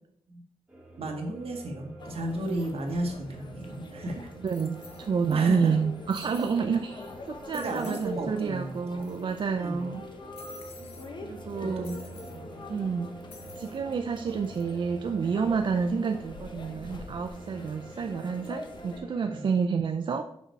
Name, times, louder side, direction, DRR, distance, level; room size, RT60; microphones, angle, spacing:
sound 1, 0.7-19.5, right 2 dB, 10° right, 1.7 m, -47 dB
voice 1, 1.0-4.3 5.3-5.9 7.5-9.0 9.6-9.9 10.8-11.0 11.8-12.0 12.3-12.4 19.2-19.5, right 1 dB, 70° right, 2 dB, 1.5 m, -34 dB
sound 2, 2.0-19.0, left 3 dB, 45° left, 0.9 m, -45 dB
sound 3, 3.6-3.7 4.5-5.3 5.6-5.7 6.1-6.6 7.0-7.2 7.5-8.1 8.4-8.5 8.7-9.5 10.4-11.1 11.8-12.4 13.3-13.8 14.3-14.6, left 5 dB, 75° left, 1.0 m, -50 dB
voice 2, 4.4-10.0 11.2-11.9 12.7-13.1 13.6-20.2, right 5 dB, 50° right, 6 dB, 0.4 m, -29 dB
6.1 x 5.3 x 4.7 m, 0.75 s
wide cardioid pair, 130°, 11 cm